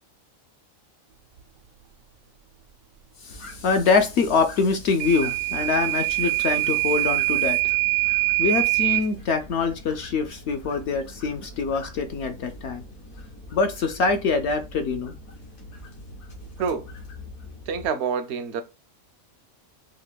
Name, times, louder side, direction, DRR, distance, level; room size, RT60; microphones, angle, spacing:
voice 1, 3.2-7.6 8.4-12.8 13.5-15.1, left 4 dB, 65° left, 0.7 m, -24 dB
sound 1, 3.3-17.9, left 1 dB, 80° left, 2.0 m, -43 dB
Microwave oven / Alarm, 5.0-9.1, right 23 dB, 90° right, 1.1 m, -23 dB
voice 2, 16.6-16.9 17.7-18.6, right 6 dB, 65° right, 0.7 m, -27 dB
5.1 x 2.8 x 2.2 m
omnidirectional pair, 1.4 m